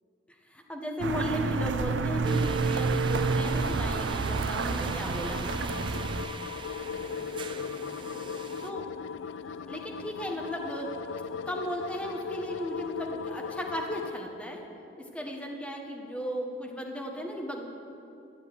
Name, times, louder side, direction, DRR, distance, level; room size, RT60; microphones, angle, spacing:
voice 1, 0.5-5.5 8.6-8.8 9.7-10.9 11.5-14.6 15.1-17.7, equal, 5° left, 0 dB, 1.5 m, -35 dB
sound 1, 1.0-6.3, right 3 dB, 75° right, 0.6 m, -29 dB
sound 2, 2.2-8.7, right 7 dB, 25° right, 0.5 m, -38 dB
sound 3, 3.5-14.2, left 6 dB, 80° left, 0.4 m, -39 dB
13.0 x 8.5 x 9.8 m, 2.7 s
head